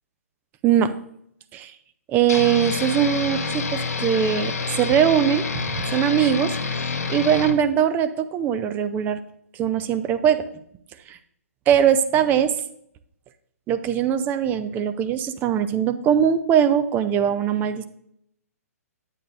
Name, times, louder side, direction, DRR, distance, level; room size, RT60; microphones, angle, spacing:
voice 1, 0.6-0.9 1.5-1.7 2.1-5.4 5.9-9.2 9.6-10.4 11.1-11.2 11.7-12.5 13.7-17.8, right 9 dB, 20° right, 10 dB, 0.5 m, -21 dB
sound 1, 2.3-7.6, left 4 dB, 75° left, 0.9 m, -28 dB
9.1 x 8.6 x 2.5 m, 0.71 s
figure-of-eight pair, 125°, 9 cm